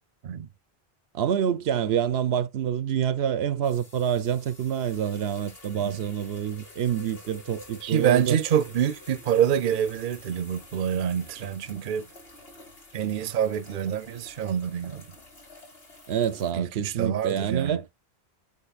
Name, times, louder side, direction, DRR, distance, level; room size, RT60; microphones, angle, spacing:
voice 1, 1.1-8.4 16.1-17.8, right 9 dB, 90° right, 0.9 m, -27 dB
sound 1, 3.6-16.5, left 1 dB, 70° left, 2.5 m, -48 dB
voice 2, 7.8-12.1 12.9-15.0 16.5-17.8, right 9 dB, 60° right, 0.7 m, -26 dB
8.4 x 2.9 x 4.0 m
omnidirectional pair, 1.0 m